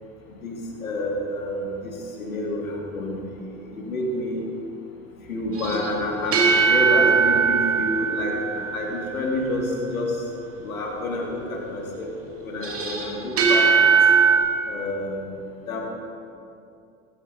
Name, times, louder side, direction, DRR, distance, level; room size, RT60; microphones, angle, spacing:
voice 1, 0.4-3.2 3.5-4.4 5.3-10.2 10.6-12.1 12.4-13.9 14.7-15.2 15.7-15.8, left 1 dB, 85° left, -1 dB, 2.7 m, -28 dB
sound 1, 5.6-9.1 12.6-14.4, right 6 dB, 35° right, 2.4 m, -20 dB
19.0 x 15.0 x 2.9 m, 2.5 s
hypercardioid pair, 75°, 41 cm